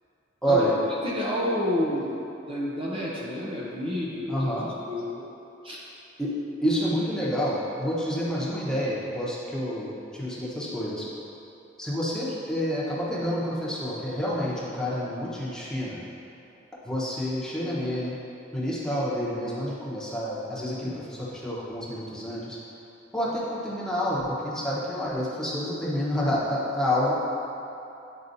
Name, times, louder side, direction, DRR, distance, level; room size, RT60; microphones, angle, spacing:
voice 1, 0.4-0.8 4.3-4.7 6.2-6.3 6.6-11.1 11.8-16.0 16.8-18.1 18.5-22.6 23.1-27.1, equal, 5° left, -8 dB, 1.0 m, -28 dB
voice 2, 1.0-2.2 2.5-4.5 4.9-5.2 5.6-5.8, left 1 dB, 30° right, -6 dB, 0.7 m, -29 dB
9.1 x 4.2 x 2.7 m, 2.9 s
head